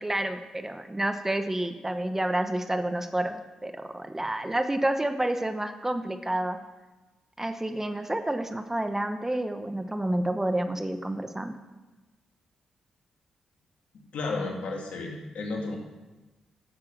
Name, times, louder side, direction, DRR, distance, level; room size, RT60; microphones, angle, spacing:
voice 1, 0.0-6.6 7.4-11.5, right 1 dB, 15° right, 8 dB, 0.9 m, -29 dB
voice 2, 14.1-15.8, left 3 dB, 70° left, 1 dB, 2.3 m, -32 dB
10.0 x 7.4 x 6.2 m, 1.1 s
supercardioid pair, 45°, 2 cm